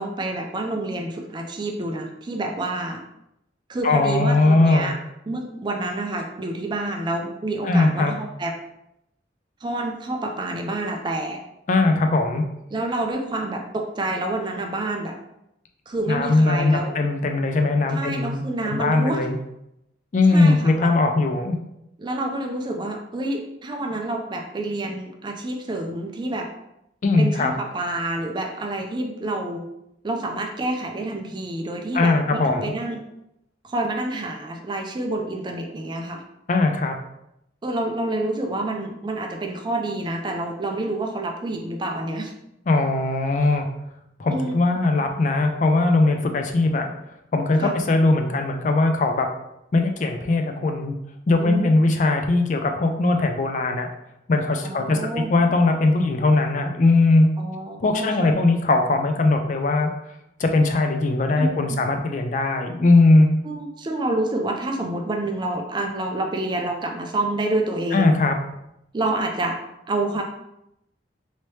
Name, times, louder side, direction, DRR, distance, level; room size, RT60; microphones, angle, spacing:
voice 1, 0.0-3.0 3.7-5.0 5.3-8.5 9.6-11.4 12.7-15.2 15.9-16.9 17.9-19.2 20.3-20.9 22.0-26.5 27.2-29.7 30.0-33.0 33.6-36.2 37.6-42.3 44.3-44.5 47.6-47.8 51.4-51.7 54.6-55.3 57.4-58.3 61.4-61.8 63.4-68.1 68.9-69.6 69.9-70.2, right 2 dB, 25° right, 2 dB, 0.4 m, -28 dB
voice 2, 3.8-4.9 7.6-8.1 11.7-12.4 16.1-19.4 20.1-21.6 27.0-27.5 31.9-32.7 36.5-36.9 42.7-43.7 44.2-46.9 47.3-49.3 49.7-50.9 51.3-53.9 54.3-57.3 57.8-59.9 60.4-63.3 67.9-68.4, left 2 dB, 45° left, 5 dB, 0.3 m, -20 dB
3.1 x 2.8 x 3.1 m, 0.82 s
head